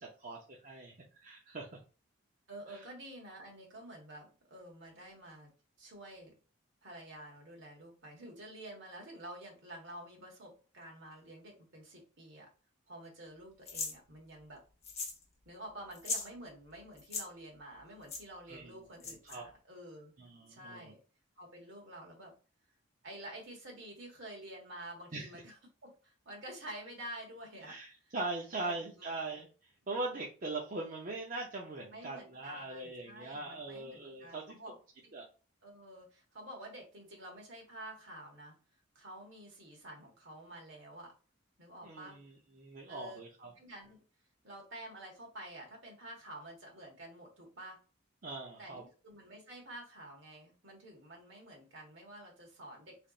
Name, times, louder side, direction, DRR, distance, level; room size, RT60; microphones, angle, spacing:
voice 1, 0.0-1.7 2.7-2.8 18.5-18.7 19.2-19.5 20.2-20.9 25.1-25.3 27.6-34.6 35.1-35.2 41.8-43.5 48.2-48.8, right 2 dB, 40° right, -2 dB, 0.6 m, -41 dB
voice 2, 2.5-5.5 5.8-6.3 6.8-12.5 12.9-14.6 15.4-20.1 20.5-21.0 21.4-22.3 23.0-27.8 28.6-29.1 31.9-34.8 35.0-35.1 35.6-38.5 38.9-41.1 41.6-42.2 42.9-43.2 43.5-44.0 44.4-47.8 48.6-53.0, right 1 dB, 60° right, 0 dB, 1.5 m, -49 dB
sound 1, 13.7-13.9 14.8-15.2 15.5-15.6 15.9-16.3 17.0-17.2 18.1-18.2 19.0-19.4, left 3 dB, 30° left, 1.0 m, -38 dB
3.9 x 3.3 x 2.4 m, 0.36 s
head